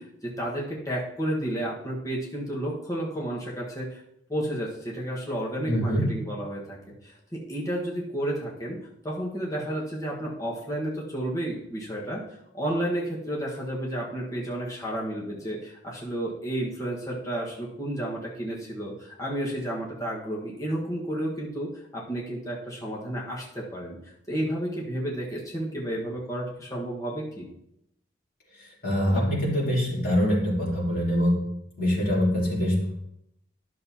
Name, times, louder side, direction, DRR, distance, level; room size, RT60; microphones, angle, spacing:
voice 1, 0.0-4.0 4.3-6.8 7.0-8.8 9.0-12.2 12.5-24.0 24.3-27.5, right 1 dB, 15° left, -5 dB, 1.4 m, -31 dB
voice 2, 5.7-6.1 28.5-31.4 31.8-32.9, equal, 45° left, -6 dB, 3.0 m, -24 dB
11.5 x 6.5 x 2.8 m, 0.79 s
head